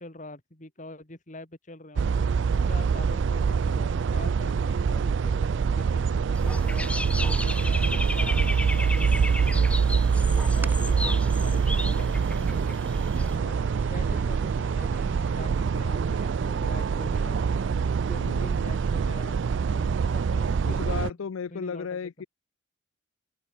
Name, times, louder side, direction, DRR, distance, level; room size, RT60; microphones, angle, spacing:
voice 1, 0.0-2.2 2.6-10.1 10.5-12.6 13.0-17.7 18.1-21.2 21.5-22.0, left 1 dB, 40° left, 2.5 m, -44 dB
sound 1, 2.0-21.1, right 5 dB, 60° right, 0.4 m, -25 dB
Dog / Bird, 6.3-13.4, left 2 dB, 5° left, 0.9 m, -34 dB
sound 2, 6.7-15.4, right 2 dB, 10° right, 1.8 m, -50 dB
voice 2, 18.2-18.6 20.6-22.2, left 6 dB, 85° left, 0.4 m, -34 dB
open air
head